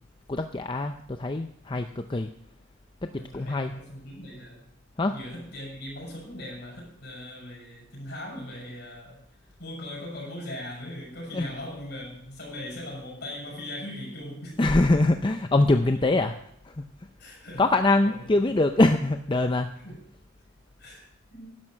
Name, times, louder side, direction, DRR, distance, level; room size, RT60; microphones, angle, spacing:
voice 1, 0.3-2.3 3.0-3.7 5.0-5.1 11.3-11.5 14.6-16.4 16.6-16.9 17.6-19.7, left 2 dB, 25° left, 7 dB, 0.5 m, -23 dB
voice 2, 3.1-4.6 5.1-9.2 9.6-14.7 17.2-17.6 18.0-18.1 19.8-20.0 20.8-21.5, left 1 dB, 55° left, -1 dB, 6.7 m, -39 dB
12.0 x 11.0 x 6.5 m, 0.72 s
head